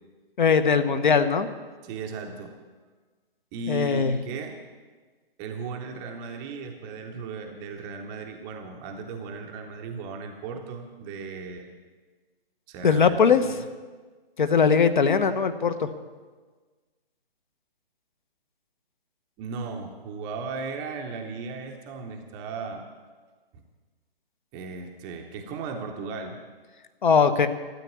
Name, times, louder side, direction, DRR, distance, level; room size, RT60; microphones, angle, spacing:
voice 1, 0.4-1.5 3.7-4.2 12.8-13.4 14.4-15.9 27.0-27.5, left 6 dB, 55° left, 10 dB, 1.1 m, -20 dB
voice 2, 1.8-2.6 3.5-4.6 5.4-11.7 12.7-13.4 19.4-22.9 24.5-26.4, right 4 dB, 15° right, 3 dB, 0.8 m, -36 dB
13.0 x 8.5 x 9.5 m, 1.4 s
figure-of-eight pair, 140°, 30 cm